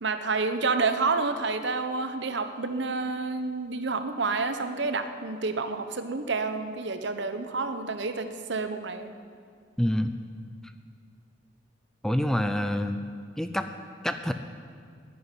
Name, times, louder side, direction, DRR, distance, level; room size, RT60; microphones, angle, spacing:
voice 1, 0.0-9.1, right 4 dB, 60° right, 9 dB, 0.9 m, -29 dB
voice 2, 9.8-10.1 12.0-13.0 13.4-13.7 14.0-14.3, equal, 5° left, 8 dB, 0.4 m, -26 dB
11.0 x 9.6 x 9.9 m, 2.1 s
head